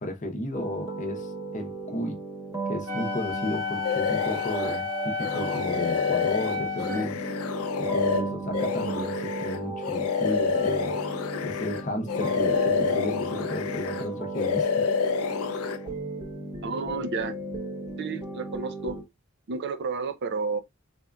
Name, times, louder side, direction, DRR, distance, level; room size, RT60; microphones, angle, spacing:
voice 1, 0.0-2.2 2.7-7.2 7.8-10.9 11.4-14.7, left 1 dB, 35° left, 0.7 m, -33 dB
sound 1, 0.5-19.0, right 3 dB, 20° right, 1.1 m, -36 dB
Wind instrument woodwind instrument, 2.9-7.1, left 6 dB, 70° right, 1.0 m, -32 dB
sound 2, 3.8-4.8 5.2-11.8 12.1-14.1 14.3-15.8, left 5 dB, 75° left, 0.4 m, -28 dB
voice 2, 16.6-17.4 18.0-19.0 19.5-20.6, right 4 dB, 50° right, 0.5 m, -31 dB
4.2 x 2.5 x 2.2 m
head